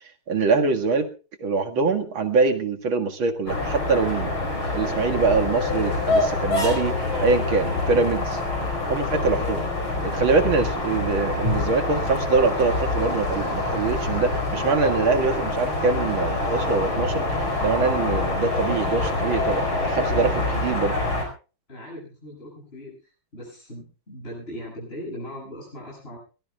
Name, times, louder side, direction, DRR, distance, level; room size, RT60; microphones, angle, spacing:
voice 1, 0.3-1.1 1.4-4.3 4.7-8.4 8.9-9.6 10.0-21.0, right 4 dB, 75° right, 5 dB, 2.7 m, -24 dB
sound 1, 3.5-21.3, left 2 dB, 85° left, 5.7 m, -26 dB
voice 2, 21.7-26.2, left 1 dB, 25° left, -5 dB, 8.1 m, -39 dB
22.5 x 19.5 x 2.4 m, 0.35 s
omnidirectional pair, 2.2 m